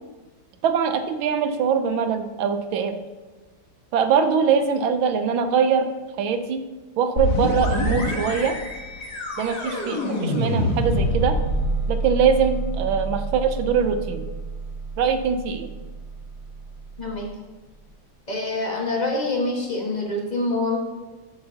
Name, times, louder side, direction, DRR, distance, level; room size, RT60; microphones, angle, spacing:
voice 1, 0.6-3.0 3.9-5.9 6.2-6.6 7.0-8.5 9.4-11.4 11.9-14.2 15.0-15.7, right 6 dB, 90° right, 8 dB, 1.6 m, -22 dB
sound 1, 7.2-16.7, equal, 55° left, 2.0 m, -26 dB
voice 2, 18.3-20.8, left 2 dB, 25° left, -1 dB, 1.6 m, -25 dB
13.5 x 8.0 x 2.9 m, 1.2 s
omnidirectional pair, 2.1 m